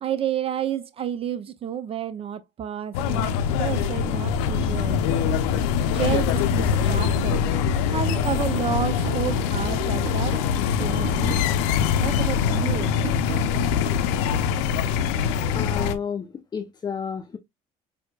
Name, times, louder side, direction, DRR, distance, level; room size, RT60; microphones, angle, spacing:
voice 1, 0.0-3.3 3.6-5.3 5.9-7.4 7.9-10.4 10.8-11.4 12.0-12.9, right 8 dB, 40° right, 0.5 m, -30 dB
sound 1, 2.9-15.9, left 7 dB, 90° left, 0.6 m, -23 dB
sound 2, 6.6-7.7 8.1-11.6 12.0-14.6, right 5 dB, 65° right, 1.1 m, -39 dB
voice 2, 15.5-17.4, left 7 dB, 30° left, 0.6 m, -31 dB
6.3 x 2.7 x 2.2 m
supercardioid pair, 90°, 14 cm